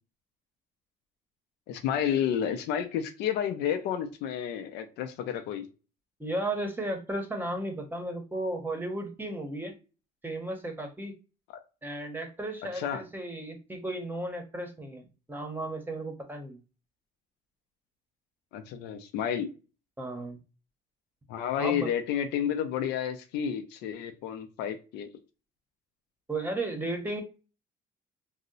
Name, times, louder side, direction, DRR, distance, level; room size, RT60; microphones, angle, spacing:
voice 1, 1.7-5.7 12.7-13.0 18.5-19.5 21.3-25.1, left 9 dB, 85° left, 7 dB, 0.5 m, -31 dB
voice 2, 6.2-9.7 10.2-11.1 11.8-15.0 15.3-16.6 20.0-20.4 21.6-21.9 26.3-27.2, right 1 dB, 10° right, 4 dB, 0.8 m, -34 dB
2.7 x 2.0 x 3.8 m, 0.32 s
cardioid pair, 110°, 17 cm